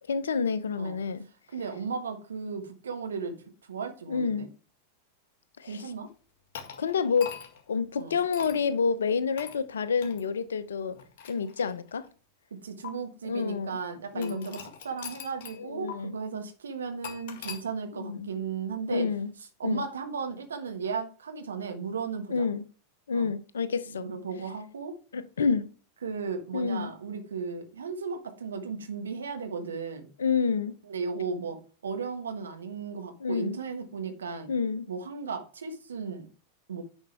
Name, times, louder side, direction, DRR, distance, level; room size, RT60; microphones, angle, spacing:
voice 1, 0.1-1.2 4.1-4.5 5.6-5.8 6.8-7.3 7.7-11.0 11.2-12.1 13.2-13.7 14.1-14.6 15.6-16.2 18.0-18.3 18.9-19.3 19.6-19.8 22.3-22.6 23.1-24.1 25.1-25.7 26.5-26.9 30.2-30.8 33.2-33.6 34.5-34.9, left 5 dB, 65° left, 0.7 m, -28 dB
voice 2, 1.5-3.4 3.6-4.5 5.6-6.1 8.0-8.2 12.6-19.1 19.6-22.5 23.1-23.3 23.9-24.9 26.0-30.1 30.8-34.5 34.9-36.3 36.7-36.8, right 5 dB, 70° right, 1.4 m, -35 dB
sound 1, 6.5-7.7 8.3-8.6 9.4-9.6 10.0-10.2 10.9-12.1 12.8-12.9 14.2-15.6 15.9-16.0 17.0-17.6, left 8 dB, 50° left, 1.8 m, -42 dB
10.0 x 5.4 x 3.4 m
figure-of-eight pair, 90°, 0 cm